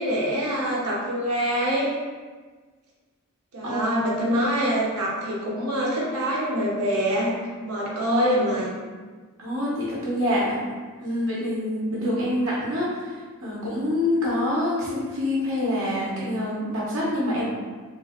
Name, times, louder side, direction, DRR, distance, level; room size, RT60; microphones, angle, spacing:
voice 1, 0.0-1.9 3.5-7.4 7.6-8.7, equal, 90° right, -5 dB, 1.0 m, -25 dB
voice 2, 9.4-10.6 11.0-13.1 13.4-17.4, left 1 dB, 65° right, -7 dB, 1.0 m, -26 dB
3.4 x 2.3 x 3.5 m, 1.4 s
head